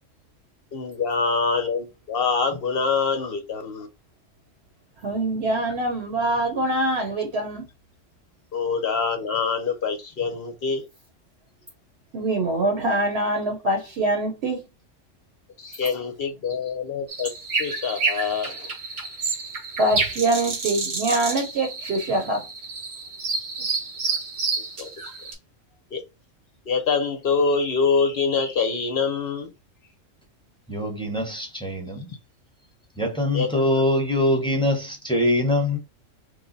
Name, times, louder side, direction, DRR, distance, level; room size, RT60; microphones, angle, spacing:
voice 1, 0.7-3.9 8.5-10.8 15.6-17.3 17.6-18.7 24.8-25.1 25.9-26.0 26.7-29.5 33.3-33.5, left 5 dB, 60° left, 0.7 m, -25 dB
voice 2, 5.0-7.7 12.1-14.6 19.8-22.4, right 2 dB, 60° right, 1.0 m, -24 dB
sound 1, 17.1-25.3, right 4 dB, 90° right, 1.4 m, -29 dB
voice 3, 30.7-32.1 33.0-35.8, left 1 dB, 5° left, 0.8 m, -23 dB
3.1 x 2.1 x 3.8 m
omnidirectional pair, 1.3 m